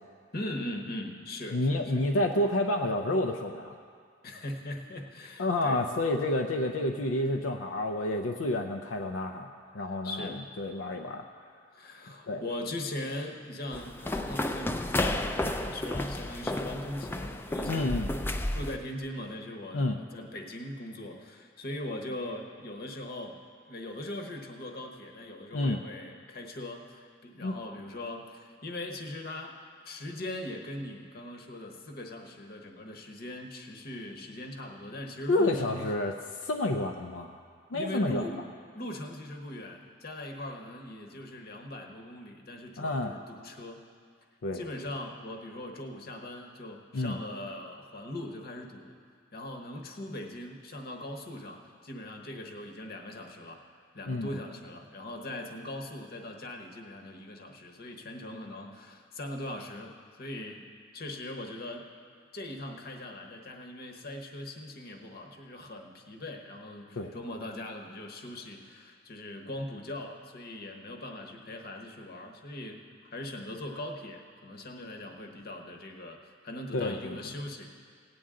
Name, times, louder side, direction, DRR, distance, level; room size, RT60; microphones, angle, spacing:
voice 1, 0.3-2.1 4.2-5.8 9.8-10.4 11.7-18.0 18.5-23.4 23.7-35.9 37.7-38.4 38.7-43.8 44.5-49.0 49.3-53.6 53.9-59.9 60.2-60.7 60.9-61.8 62.3-77.7, left 1 dB, 55° left, 3 dB, 1.0 m, -40 dB
voice 2, 1.5-3.8 5.4-9.5 9.7-11.2 12.3-12.4 17.7-18.1 19.7-20.0 25.5-25.8 27.4-27.6 35.3-36.1 36.4-37.4 37.7-38.3 42.8-43.1 44.4-44.6 46.9-47.2 54.1-54.4 67.0-67.1 76.7-77.2, left 1 dB, 85° left, 4 dB, 0.5 m, -29 dB
sound 1, 13.7-18.8, left 1 dB, 10° left, 0.4 m, -32 dB
17.5 x 8.7 x 3.7 m, 2.1 s
head